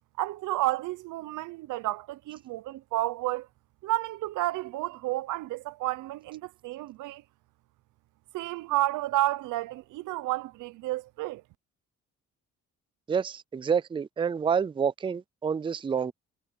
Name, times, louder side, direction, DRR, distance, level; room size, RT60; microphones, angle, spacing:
voice 1, 0.2-3.5 3.8-7.2 8.3-11.4, right 17 dB, 90° right, 0.8 m, -31 dB
voice 2, 13.1-16.1, right 6 dB, 15° right, 0.4 m, -28 dB
cardioid pair, 90°, 30 cm